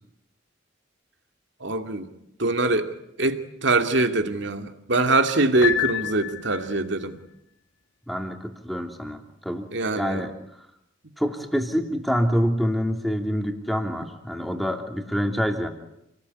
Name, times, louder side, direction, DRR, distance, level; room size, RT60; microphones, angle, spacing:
voice 1, 1.6-2.1 2.4-2.9 3.2-7.2 9.7-10.2, right 2 dB, 65° right, 7 dB, 2.5 m, -23 dB
Piano, 5.6-6.9, left 11 dB, 75° left, 1.9 m, -28 dB
voice 2, 8.1-9.7 9.9-10.7 11.2-15.7, equal, ahead, 4 dB, 3.0 m, -26 dB
29.0 x 20.0 x 9.6 m, 0.82 s
head